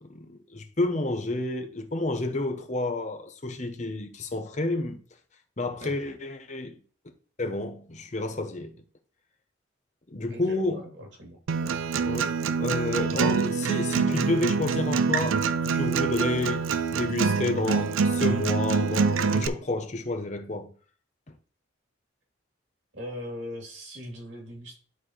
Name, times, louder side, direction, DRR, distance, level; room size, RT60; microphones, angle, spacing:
voice 1, 0.0-5.0 5.6-6.8 7.4-8.7 10.1-10.8 11.6-11.8 12.0-16.6 16.9-20.7, left 2 dB, 35° left, 0.8 m, -30 dB
voice 2, 10.3-11.4 22.9-24.8, left 1 dB, 65° right, 2.9 m, -40 dB
Acoustic guitar, 11.5-19.5, right 5 dB, 90° right, 0.4 m, -25 dB
11.5 x 4.2 x 3.1 m
head